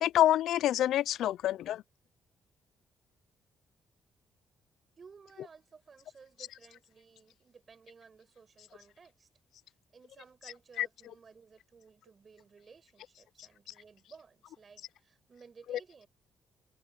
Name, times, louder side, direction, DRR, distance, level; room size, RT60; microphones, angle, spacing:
voice 1, 0.0-1.8 10.8-10.9 15.7-15.8, left 12 dB, 80° left, 0.4 m, -27 dB
voice 2, 5.0-9.3 9.9-16.1, right 5 dB, 40° right, 5.4 m, -57 dB
cardioid pair, 90°, 0 cm